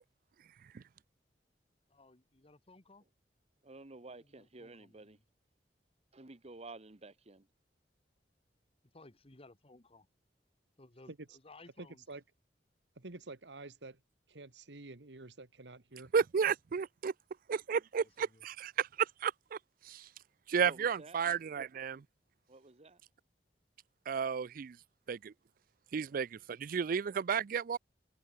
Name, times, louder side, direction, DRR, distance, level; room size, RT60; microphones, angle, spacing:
voice 1, 1.9-3.0 4.2-5.1 8.8-10.1 10.8-12.0 18.0-18.4, left 2 dB, 35° left, 1.7 m, -59 dB
voice 2, 3.6-5.2 6.1-7.5 20.6-21.2 22.5-23.0, right 2 dB, 35° right, 1.2 m, -51 dB
voice 3, 11.8-12.2 12.9-14.0 14.3-16.1, right 2 dB, 80° right, 1.6 m, -49 dB
voice 4, 16.1-17.1 17.5-19.6 19.8-20.1 20.5-22.0 24.1-24.8 25.1-25.3 25.9-27.8, right 6 dB, 55° right, 0.4 m, -33 dB
head